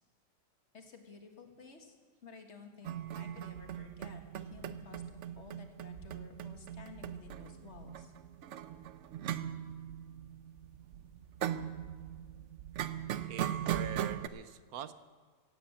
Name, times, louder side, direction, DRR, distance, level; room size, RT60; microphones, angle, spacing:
voice 1, 0.7-2.0 2.2-8.1, left 5 dB, 50° left, 4 dB, 1.8 m, -53 dB
sound 1, 2.8-14.3, right 10 dB, 65° right, 0.9 m, -40 dB
voice 2, 13.3-14.9, right 10 dB, 85° right, 13 dB, 1.2 m, -44 dB
16.5 x 8.3 x 8.5 m, 1.6 s
omnidirectional pair, 1.5 m